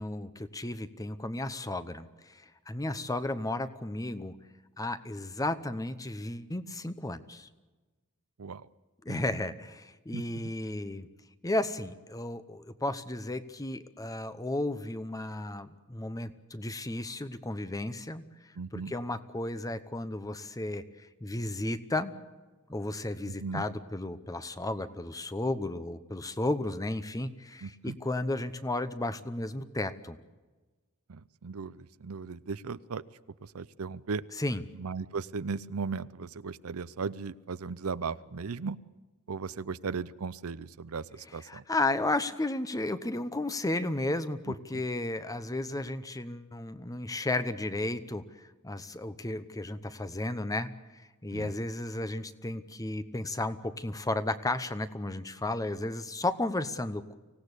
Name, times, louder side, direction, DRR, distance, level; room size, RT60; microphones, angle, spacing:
voice 1, 0.0-4.3 4.8-7.5 9.0-11.1 11.4-18.2 18.7-22.1 22.7-30.2 34.4-34.6 41.3-48.2 48.6-50.7 51.2-57.2, left 2 dB, 15° left, 12 dB, 0.9 m, -33 dB
voice 2, 10.1-10.5 18.6-18.9 23.3-23.6 27.6-28.0 31.1-33.0 33.5-34.2 34.8-38.8 39.3-41.6 44.5-44.8 51.3-51.5, right 5 dB, 70° right, 16 dB, 0.6 m, -37 dB
25.0 x 17.0 x 8.2 m, 1.2 s
head